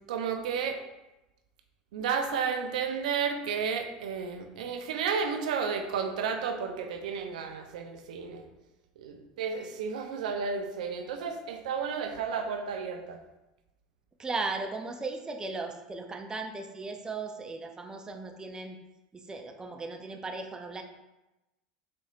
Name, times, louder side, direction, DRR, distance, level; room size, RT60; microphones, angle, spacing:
voice 1, 0.1-0.8 1.9-8.4 9.0-13.2, right 6 dB, 75° right, 6 dB, 0.5 m, -32 dB
voice 2, 14.2-18.8 19.1-20.8, right 3 dB, 20° right, 4 dB, 0.4 m, -37 dB
4.1 x 3.1 x 2.4 m, 0.99 s
hypercardioid pair, 85°, 4 cm